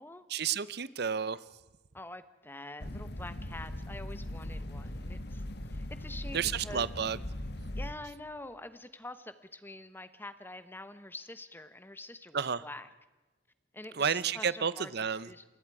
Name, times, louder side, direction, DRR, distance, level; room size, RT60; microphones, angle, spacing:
voice 1, 0.3-1.4 6.3-7.2 12.3-12.6 14.0-15.3, right 7 dB, 55° right, 18 dB, 0.8 m, -31 dB
voice 2, 1.9-5.4 5.7-6.9 7.7-12.9 13.7-15.4, left 2 dB, 10° left, 12 dB, 1.1 m, -46 dB
sound 1, 2.8-7.9, left 1 dB, 60° left, 1.6 m, -39 dB
28.5 x 21.0 x 4.9 m, 1.1 s
head